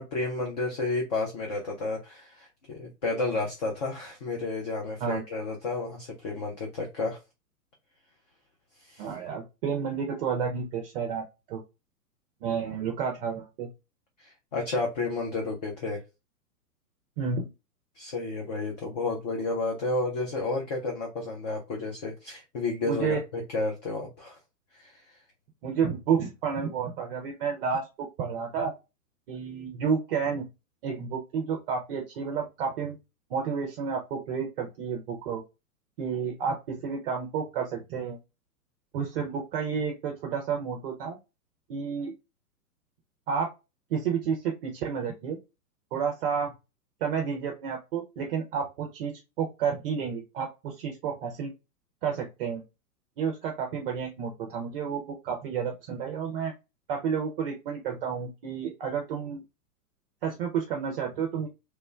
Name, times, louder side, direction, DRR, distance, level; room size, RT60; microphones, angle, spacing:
voice 1, 0.0-7.2 8.8-9.1 14.2-16.0 18.0-24.4 24.7-25.2, left 3 dB, 30° left, 0 dB, 0.4 m, -31 dB
voice 2, 9.0-11.6 12.4-13.7 17.2-17.5 22.8-23.2 25.6-27.9 28.2-28.7 29.3-30.5 30.8-33.0 33.3-35.4 36.0-38.2 38.9-41.2 41.7-42.1 43.3-43.5 43.9-45.4 45.9-46.5 47.0-51.5 52.0-52.6 53.2-56.5 56.9-59.4 60.2-61.5, right 6 dB, 40° right, 1 dB, 0.5 m, -30 dB
3.0 x 2.1 x 2.3 m, 0.26 s
figure-of-eight pair, 115°, 47 cm